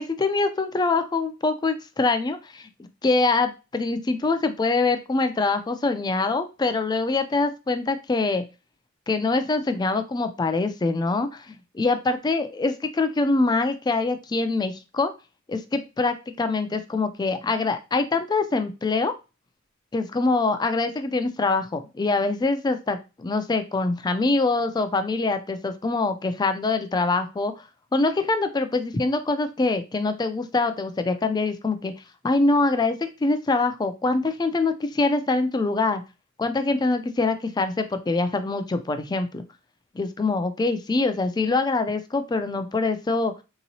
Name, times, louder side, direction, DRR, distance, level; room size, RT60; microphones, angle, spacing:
voice 1, 0.0-2.7 3.0-8.4 9.1-15.1 15.5-19.1 19.9-27.5 27.9-31.9 32.2-36.0 36.4-39.4 39.9-43.3, left 3 dB, 20° left, 9 dB, 0.3 m, -24 dB
3.7 x 2.9 x 2.7 m, 0.29 s
head